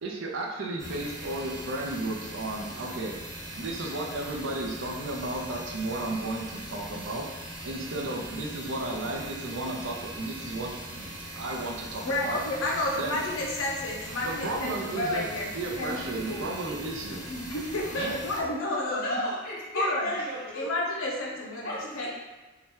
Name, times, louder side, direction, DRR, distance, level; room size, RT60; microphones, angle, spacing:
voice 1, 0.0-3.1 3.5-7.3 7.6-10.7 11.4-12.4 13.0-13.2 14.2-15.3 15.5-17.2 17.9-18.1, right 2 dB, 70° right, -1 dB, 0.5 m, -33 dB
sound 1, 0.8-18.4, right 1 dB, 15° right, 0.7 m, -41 dB
voice 2, 12.0-15.5 15.7-16.5 17.2-19.0 19.7-20.1 20.5-22.1, left 1 dB, 90° left, -2 dB, 0.6 m, -31 dB
voice 3, 19.0-20.8 21.6-22.1, equal, 50° left, -8 dB, 1.1 m, -33 dB
2.8 x 2.2 x 3.1 m, 1.2 s
head